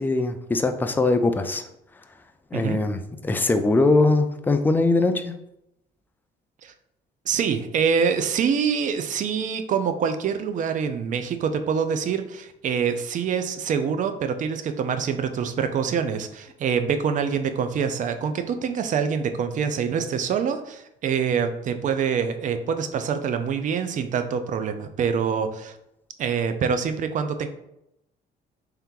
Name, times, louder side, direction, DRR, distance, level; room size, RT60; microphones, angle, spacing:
voice 1, 0.0-1.6 2.5-5.3, left 2 dB, 10° left, 7 dB, 0.4 m, -21 dB
voice 2, 7.3-25.7 26.2-27.5, right 6 dB, 50° right, 8 dB, 0.5 m, -25 dB
3.3 x 3.0 x 3.7 m, 0.83 s
cardioid pair, 110°, 17 cm